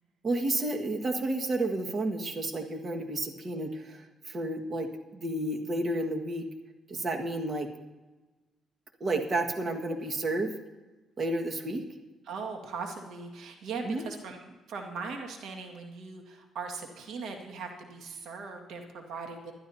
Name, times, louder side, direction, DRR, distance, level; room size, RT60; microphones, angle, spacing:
voice 1, 0.2-4.9 5.1-6.4 6.9-7.7 9.0-10.5 11.2-11.8 13.8-14.0, right 2 dB, 40° right, 4 dB, 1.7 m, -31 dB
voice 2, 12.2-19.5, right 4 dB, 80° right, 3 dB, 1.9 m, -39 dB
20.0 x 11.5 x 2.8 m, 1.2 s
cardioid pair, 90°, 0 cm